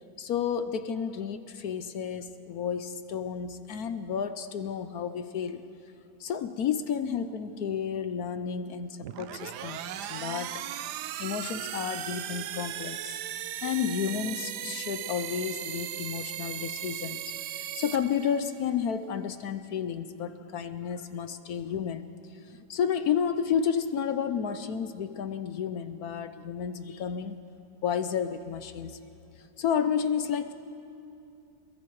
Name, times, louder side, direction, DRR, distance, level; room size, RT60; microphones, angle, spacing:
voice 1, 0.2-5.6 6.2-10.5 11.2-13.1 13.6-22.1 22.4-27.4 27.8-29.0 29.6-30.5, left 7 dB, 65° left, 11 dB, 1.1 m, -31 dB
sound 1, 9.0-18.7, right 11 dB, 70° right, 1.2 m, -37 dB
27.5 x 21.5 x 4.7 m, 2.7 s
omnidirectional pair, 1.9 m